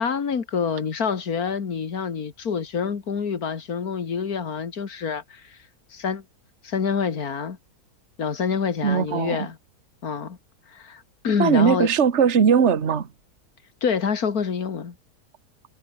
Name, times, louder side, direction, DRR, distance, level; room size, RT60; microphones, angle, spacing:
voice 1, 0.0-5.6 5.9-6.2 6.6-7.6 8.2-9.6 10.0-10.4 10.7-11.9 13.8-15.0, left 6 dB, 65° left, 2.3 m, -27 dB
voice 2, 8.8-9.5 11.4-13.1, right 7 dB, 45° right, 1.7 m, -19 dB
omnidirectional pair, 1.7 m